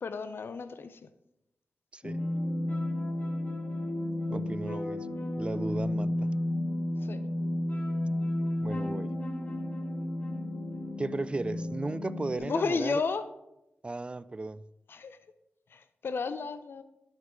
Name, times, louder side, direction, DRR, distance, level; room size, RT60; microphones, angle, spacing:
voice 1, 0.0-1.1 7.0-7.2 12.4-13.2 14.9-15.2 15.7-16.8, left 4 dB, 65° left, 0.6 m, -33 dB
voice 2, 1.9-2.2 4.3-5.1 5.4-6.3 8.6-9.2 11.0-13.0 13.8-14.6, right 2 dB, 25° right, 0.4 m, -35 dB
sound 1, 2.0-12.4, left 1 dB, 45° left, 1.7 m, -32 dB
11.0 x 7.3 x 3.8 m
cardioid pair, 75°, 4 cm